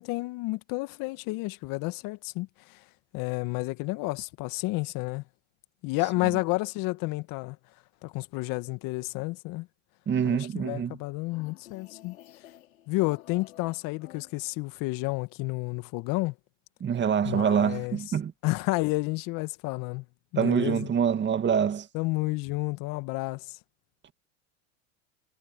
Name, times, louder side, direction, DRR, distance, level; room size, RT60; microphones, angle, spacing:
voice 1, 0.0-2.8 3.1-5.2 5.8-7.6 8.0-9.7 10.2-12.2 12.9-16.3 17.2-18.0 18.4-20.0 20.3-20.9 21.9-23.6, left 23 dB, 55° left, 1.7 m, -31 dB
voice 2, 10.1-11.0 16.8-18.3 20.4-21.9, right 7 dB, 25° right, 2.2 m, -25 dB
sound 1, 11.3-14.8, left 13 dB, 85° left, 5.4 m, -52 dB
hypercardioid pair, 95°, 40 cm